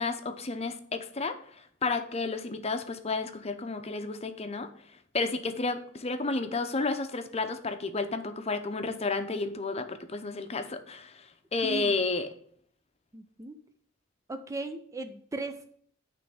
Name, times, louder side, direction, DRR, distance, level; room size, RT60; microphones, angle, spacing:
voice 1, 0.0-4.7 5.1-12.3, left 3 dB, 30° left, 8 dB, 0.7 m, -32 dB
voice 2, 13.1-13.6 14.3-15.7, right 2 dB, 15° right, 8 dB, 0.4 m, -37 dB
9.4 x 3.4 x 6.9 m, 0.62 s
head